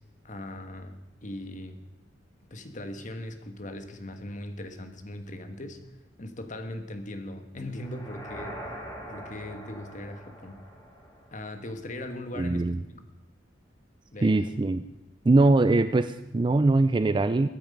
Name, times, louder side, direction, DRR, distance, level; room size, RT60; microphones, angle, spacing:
voice 1, 0.2-1.8 2.5-5.8 6.2-8.7 9.1-10.6 11.3-12.7 14.1-14.5, left 1 dB, 45° left, 7 dB, 1.4 m, -39 dB
sound 1, 7.7-11.8, equal, 20° left, 3.3 m, -43 dB
voice 2, 12.3-12.8 14.2-14.8 15.3-17.5, right 2 dB, 25° right, 11 dB, 0.4 m, -22 dB
21.0 x 9.2 x 5.3 m, 1.0 s
head